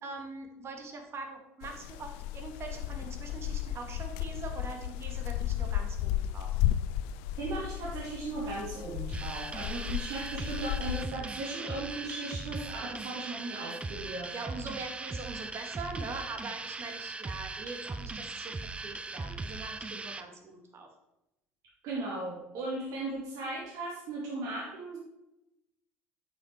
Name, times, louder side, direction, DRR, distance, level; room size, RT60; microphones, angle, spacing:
voice 1, 0.0-6.6 14.3-20.9, right 3 dB, 40° right, 4 dB, 2.2 m, -42 dB
sound 1, 1.6-11.1, left 12 dB, 65° left, 0.4 m, -34 dB
voice 2, 7.4-14.4 21.8-25.0, right 2 dB, 55° right, -3 dB, 2.3 m, -37 dB
sound 2, 9.1-20.2, right 3 dB, 15° right, 0.7 m, -39 dB
8.6 x 6.3 x 4.6 m, 0.89 s
hypercardioid pair, 65°, 7 cm